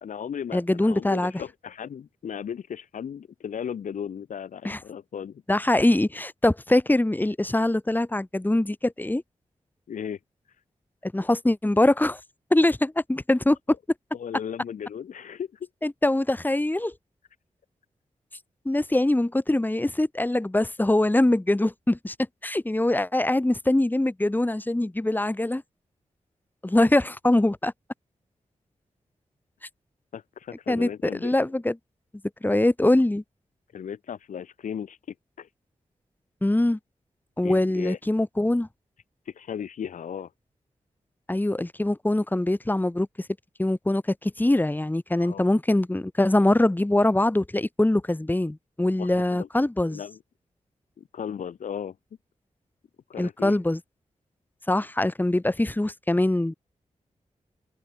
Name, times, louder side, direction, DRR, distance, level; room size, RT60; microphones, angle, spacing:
voice 1, 0.0-5.4 9.9-10.2 14.1-15.7 30.1-31.3 33.7-35.5 37.4-38.0 39.3-40.3 45.2-45.5 49.0-49.5 49.9-50.2 51.0-52.0 53.1-53.6, left 8 dB, 90° left, 2.8 m, -36 dB
voice 2, 0.5-1.3 4.6-4.8 5.5-9.2 11.0-12.2 12.5-13.6 15.8-16.9 18.6-22.1 22.4-25.6 26.6-27.7 30.7-30.9 31.2-31.7 32.4-33.2 36.4-36.8 37.4-38.7 41.3-43.3 43.6-50.0 53.2-53.8 54.7-56.5, left 1 dB, 15° left, 1.5 m, -23 dB
cardioid pair, 50°, 13 cm